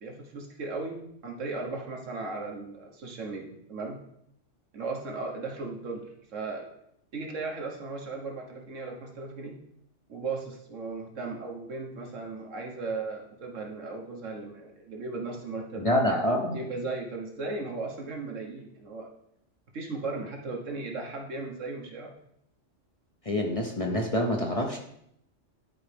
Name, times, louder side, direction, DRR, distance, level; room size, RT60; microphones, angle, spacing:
voice 1, 0.0-4.0 4.7-6.7 7.1-9.5 10.1-16.2 16.5-19.1 19.7-22.1, right 3 dB, 85° right, 1 dB, 1.6 m, -36 dB
voice 2, 15.8-16.6 23.2-24.8, left 1 dB, 35° left, 1 dB, 0.7 m, -26 dB
11.0 x 4.7 x 3.4 m, 0.74 s
omnidirectional pair, 1.3 m